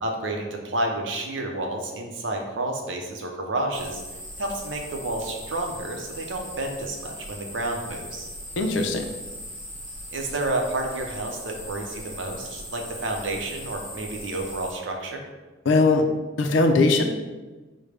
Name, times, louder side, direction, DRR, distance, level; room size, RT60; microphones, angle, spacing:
voice 1, 0.0-4.0 4.4-8.3 10.1-15.2, right 2 dB, 70° right, 2 dB, 0.6 m, -30 dB
sound 1, 3.7-14.7, equal, 10° right, 1.1 m, -39 dB
voice 2, 8.6-9.1 15.7-16.1 16.4-17.0, left 3 dB, 70° left, 5 dB, 0.4 m, -19 dB
4.9 x 2.2 x 3.3 m, 1.2 s
head